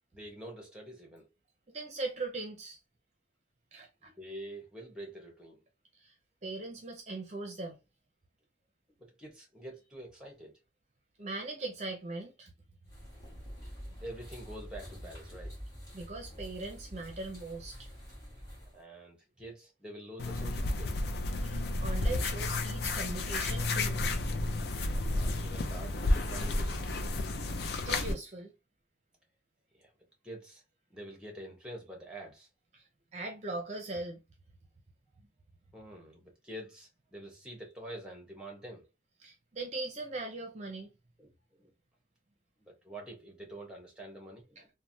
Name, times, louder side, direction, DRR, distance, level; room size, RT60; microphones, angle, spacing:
voice 1, 0.1-1.2 4.2-5.6 9.0-10.5 14.0-15.5 18.6-21.0 25.0-27.0 29.7-29.9 30.2-30.6 30.9-32.5 35.7-38.8 41.2-41.3 41.6-41.7 42.6-44.7, right 1 dB, 5° right, 0.9 m, -47 dB
voice 2, 1.7-2.8 3.7-4.1 6.0-6.1 6.4-7.8 11.2-12.5 15.9-17.9 21.4-24.0 27.7-28.5 32.7-32.8 33.1-34.2 39.2-40.9 44.6-44.7, right 2 dB, 40° right, 0.5 m, -40 dB
sound 1, 12.8-18.8, equal, 20° left, 1.5 m, -47 dB
sound 2, 20.2-28.1, left 2 dB, 55° left, 0.4 m, -31 dB
3.1 x 2.1 x 2.6 m
head